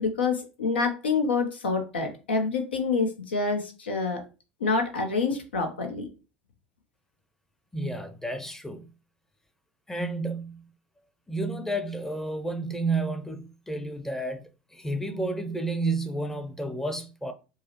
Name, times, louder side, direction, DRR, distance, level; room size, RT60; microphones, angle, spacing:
voice 1, 0.0-4.2 4.6-6.1, left 4 dB, 85° left, 0.6 m, -27 dB
voice 2, 7.7-8.9 9.9-10.6 11.3-14.4 14.7-17.3, right 2 dB, 5° left, 0.6 m, -31 dB
4.7 x 2.0 x 2.9 m
hypercardioid pair, 80°, 6 cm